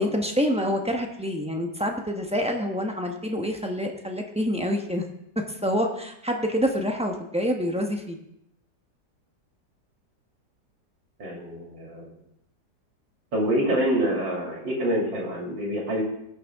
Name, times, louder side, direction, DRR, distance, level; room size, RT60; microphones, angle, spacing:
voice 1, 0.0-5.0 5.4-8.2, equal, 5° right, 2 dB, 0.6 m, -27 dB
voice 2, 11.2-12.1 13.3-16.0, right 1 dB, 85° right, -2 dB, 3.4 m, -26 dB
18.0 x 6.7 x 3.5 m, 0.77 s
omnidirectional pair, 1.9 m